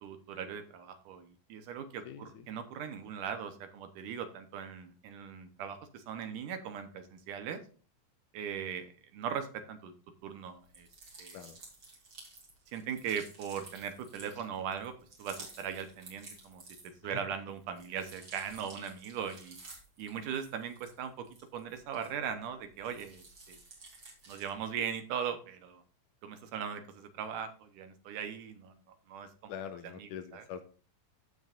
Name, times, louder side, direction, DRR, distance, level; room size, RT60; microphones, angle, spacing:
voice 1, 0.0-7.6 8.3-9.9 10.2-10.9 11.2-11.4 12.7-14.9 15.2-16.6 17.0-19.6 20.0-21.1 21.5-23.6 24.3-25.8 26.2-28.7 29.1-29.5 30.0-30.4, right 7 dB, 70° right, 8 dB, 2.3 m, -39 dB
voice 2, 2.1-2.5 11.3-11.6 17.0-17.2 29.5-30.6, left 8 dB, 75° left, 9 dB, 2.0 m, -44 dB
sound 1, 10.7-17.1 17.5-22.4 22.7-24.6, right 3 dB, 35° right, 3.5 m, -53 dB
14.5 x 6.4 x 2.5 m, 0.38 s
omnidirectional pair, 4.1 m